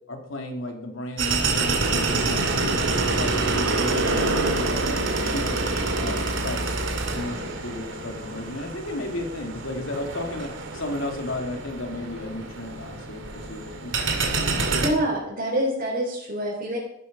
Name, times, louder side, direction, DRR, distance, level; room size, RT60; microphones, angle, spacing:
voice 1, 0.1-2.8 3.1-4.8 5.2-6.8 7.1-14.1, left 1 dB, 70° left, 3 dB, 2.8 m, -34 dB
sound 1, 1.2-14.9, right 3 dB, 65° right, 2.6 m, -26 dB
voice 2, 14.8-16.8, right 1 dB, 40° right, -5 dB, 4.2 m, -26 dB
15.5 x 12.5 x 5.4 m, 0.85 s
head